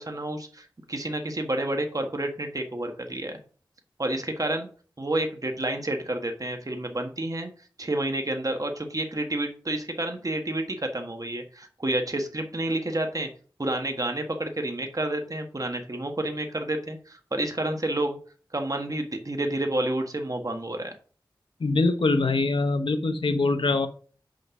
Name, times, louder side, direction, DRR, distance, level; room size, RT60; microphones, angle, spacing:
voice 1, 0.0-3.4 4.0-4.7 5.0-7.5 7.8-13.3 13.6-18.2 18.5-20.9, right 1 dB, 45° right, 1.6 m, -29 dB
voice 2, 21.6-23.9, left 3 dB, 85° left, 0.8 m, -23 dB
6.5 x 5.3 x 5.9 m
wide cardioid pair, 50°, 8 cm